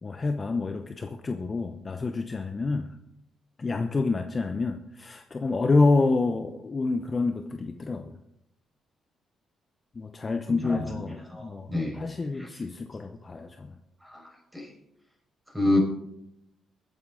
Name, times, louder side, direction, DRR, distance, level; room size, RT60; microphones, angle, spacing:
voice 1, 0.0-3.0 3.6-8.2 9.9-13.8, left 3 dB, 30° left, 7 dB, 0.8 m, -28 dB
voice 2, 10.5-10.8 11.3-12.0 12.4-12.5 14.0-14.2 14.5-14.7 15.5-15.8, left 2 dB, 5° right, 0 dB, 5.3 m, -27 dB
21.5 x 8.8 x 3.9 m, 0.80 s
cardioid pair, 90°, 0 cm